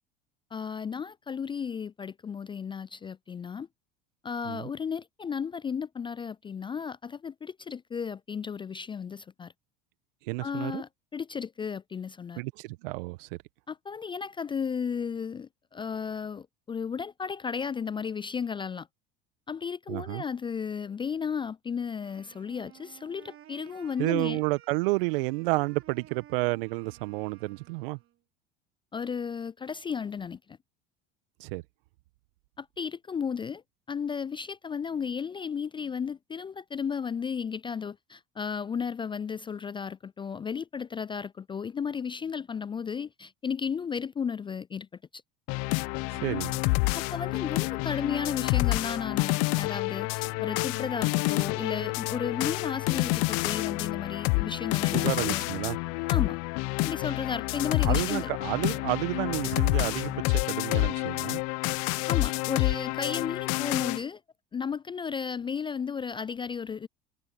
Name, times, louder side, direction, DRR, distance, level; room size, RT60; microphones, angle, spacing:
voice 1, 0.5-3.7 4.2-9.5 10.4-12.4 13.7-18.9 19.5-24.4 28.9-30.6 32.6-33.6 33.9-44.9 45.1-45.2 46.9-55.5 56.1-56.4 56.8-58.3 62.1-64.2 64.5-66.9, left 6 dB, 15° left, 0.4 m, -34 dB
voice 2, 10.2-10.8 12.4-13.4 19.9-20.2 24.0-28.0 31.4-31.6 46.1-46.6 54.9-55.8 57.8-61.4, right 24 dB, 70° right, 1.7 m, -30 dB
Wind instrument woodwind instrument, 22.0-28.2, right 12 dB, 50° right, 3.4 m, -55 dB
sound 1, 45.5-64.0, left 30 dB, 60° left, 0.9 m, -28 dB
hypercardioid pair, 75°, 29 cm